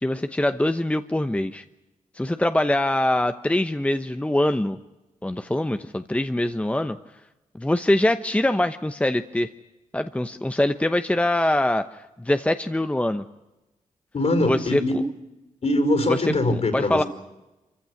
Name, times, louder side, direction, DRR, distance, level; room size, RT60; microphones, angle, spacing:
voice 1, 0.0-1.6 2.1-4.8 5.2-7.0 7.5-9.5 9.9-13.2 14.5-14.8 16.5-17.0, left 1 dB, 10° left, 9 dB, 0.9 m, -23 dB
voice 2, 14.1-15.0 15.6-17.1, left 1 dB, 55° left, 7 dB, 5.3 m, -22 dB
25.0 x 15.5 x 9.6 m, 1.0 s
cardioid pair, 60°, 13 cm